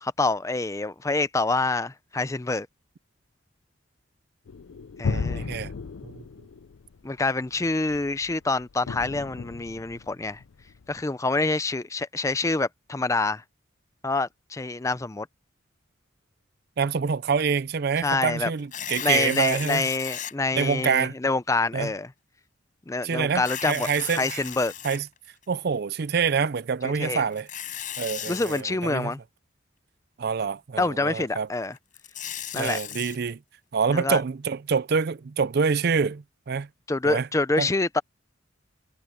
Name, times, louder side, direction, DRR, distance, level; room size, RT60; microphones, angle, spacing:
voice 1, 0.0-2.7 5.0-5.5 7.0-10.4 10.9-13.4 14.0-15.3 18.0-18.5 19.0-22.1 22.9-24.7 26.8-27.2 28.3-29.2 30.8-31.7 32.5-32.8 33.9-34.2 36.9-38.0, left 3 dB, 15° left, 0.4 m, -26 dB
sound 1, 4.5-11.0, left 4 dB, 80° left, 0.5 m, -35 dB
voice 2, 5.1-5.7 6.0-6.2 16.8-19.9 20.5-21.2 21.7-21.9 23.0-24.4 24.8-25.1 25.5-27.5 28.0-29.1 30.2-31.5 32.5-33.4 33.7-36.7 37.0-37.3 37.6-37.7, right 6 dB, 50° right, 0.4 m, -26 dB
Tearing, 18.6-20.3 21.0-21.1 23.3-25.4 27.3-28.6 31.8-33.2, left 10 dB, 40° left, 4.9 m, -36 dB
head